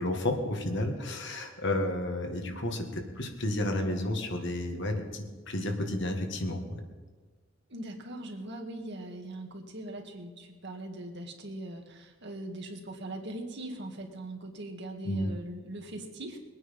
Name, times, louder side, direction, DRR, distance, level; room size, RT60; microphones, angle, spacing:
voice 1, 0.0-6.6 15.0-15.3, left 1 dB, 60° left, 4 dB, 1.9 m, -31 dB
voice 2, 7.7-16.4, right 1 dB, 60° right, 3 dB, 2.0 m, -41 dB
22.0 x 9.3 x 5.4 m, 1.5 s
head